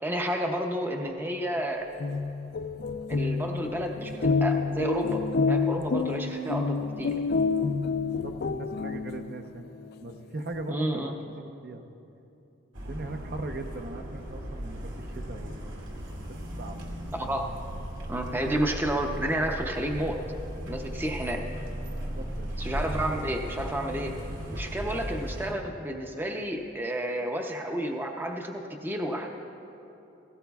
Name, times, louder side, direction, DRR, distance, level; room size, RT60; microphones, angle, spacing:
voice 1, 0.0-1.8 3.1-7.1 10.7-11.1 17.1-17.5 18.1-20.2 20.7-21.4 22.6-24.1 24.5-29.3, right 1 dB, 10° right, 2 dB, 0.6 m, -31 dB
sound 1, 1.8-9.5, left 4 dB, 50° left, 0.4 m, -28 dB
voice 2, 8.2-9.7 10.0-11.8 12.8-17.0 22.2-22.5, right 2 dB, 50° right, 5 dB, 0.7 m, -40 dB
sound 2, 12.7-25.5, equal, 70° right, 2.2 m, -37 dB
17.0 x 17.0 x 2.3 m, 2.8 s
head